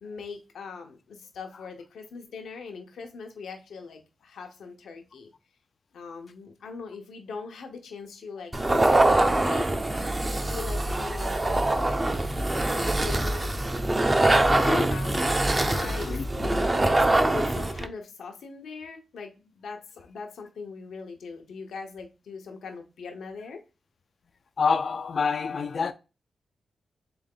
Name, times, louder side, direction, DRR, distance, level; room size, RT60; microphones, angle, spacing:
voice 1, 0.0-5.3 5.9-9.7 10.5-12.1 12.7-13.5 14.2-23.6, left 4 dB, 90° left, 0.8 m, -41 dB
sound 1, 8.5-17.9, right 2 dB, 25° right, 0.5 m, -24 dB
voice 2, 14.5-14.9 15.7-16.2 16.8-16.9 24.6-25.9, left 5 dB, 60° left, 0.3 m, -28 dB
3.6 x 3.4 x 3.7 m
cardioid pair, 80°, 0 cm